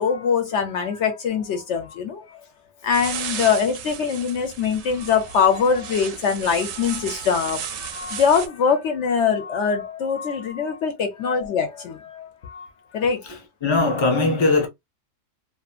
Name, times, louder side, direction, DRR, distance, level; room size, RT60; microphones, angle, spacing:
voice 1, 0.0-2.4 2.8-13.2, left 6 dB, 65° left, 0.8 m, -23 dB
sound 1, 2.9-8.5, right 8 dB, 75° right, 0.9 m, -34 dB
voice 2, 13.3-14.7, left 3 dB, 40° left, 0.4 m, -20 dB
2.6 x 2.4 x 2.3 m
omnidirectional pair, 1.4 m